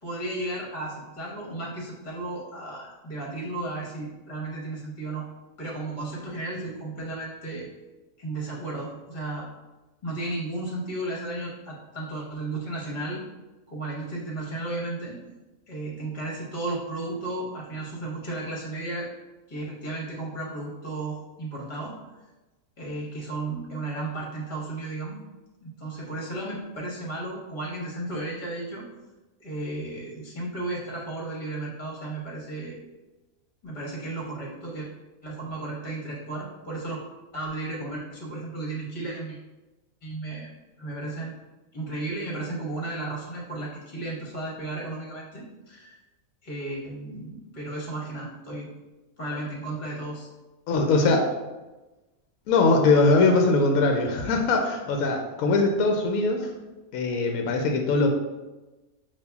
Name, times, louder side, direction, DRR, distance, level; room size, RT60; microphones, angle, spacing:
voice 1, 0.0-5.3 5.6-7.7 8.2-9.5 10.0-13.2 13.7-15.2 15.7-19.1 19.5-21.9 22.8-25.2 25.6-28.8 29.4-32.8 33.6-34.9 35.2-37.0 37.3-39.4 40.0-40.5 40.8-41.4 41.7-46.0 46.4-48.7 49.2-50.3 50.9-51.2, right 2 dB, 35° left, -3 dB, 1.2 m, -34 dB
voice 2, 50.7-51.2 52.5-56.5 56.9-58.1, left 3 dB, 75° left, 3 dB, 1.0 m, -21 dB
6.9 x 2.7 x 2.3 m, 1.1 s
omnidirectional pair, 1.5 m